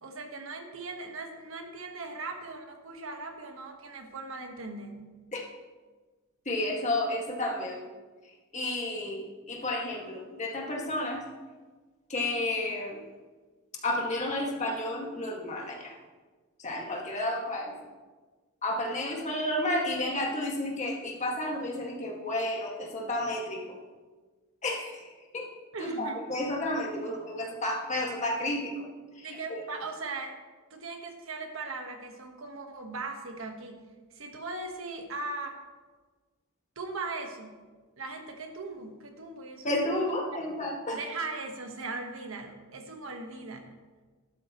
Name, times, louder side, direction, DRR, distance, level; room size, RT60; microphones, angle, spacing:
voice 1, 0.0-5.2 25.7-26.2 29.2-30.4 30.7-33.8 34.1-35.6 36.7-37.6 38.0-39.8 40.3-40.4 40.9-43.7, right 3 dB, 65° right, 4 dB, 1.4 m, -39 dB
voice 2, 6.5-7.8 8.5-11.2 12.1-13.0 13.8-16.0 16.6-17.7 18.6-23.6 24.6-25.1 25.3-25.5 25.8-28.8 29.2-29.6 39.6-41.0, left 1 dB, 35° left, -1 dB, 2.0 m, -31 dB
13.5 x 12.0 x 3.1 m, 1.4 s
head